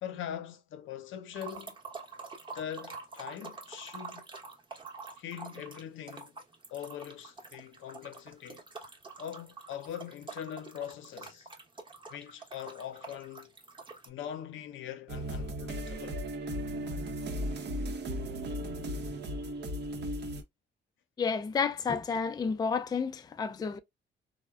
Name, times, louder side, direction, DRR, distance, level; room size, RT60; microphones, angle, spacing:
voice 1, 0.0-1.8 2.5-4.3 5.2-6.4 6.7-8.6 9.2-11.5 12.1-13.5 14.1-16.2, left 10 dB, 75° left, 0.6 m, -42 dB
sound 1, 1.3-14.1, right 4 dB, 25° right, 0.9 m, -47 dB
sound 2, 15.1-20.4, equal, 60° right, 0.7 m, -36 dB
voice 2, 21.2-23.8, left 5 dB, 20° left, 0.3 m, -31 dB
3.4 x 2.1 x 2.3 m
cardioid pair, 90°, 20 cm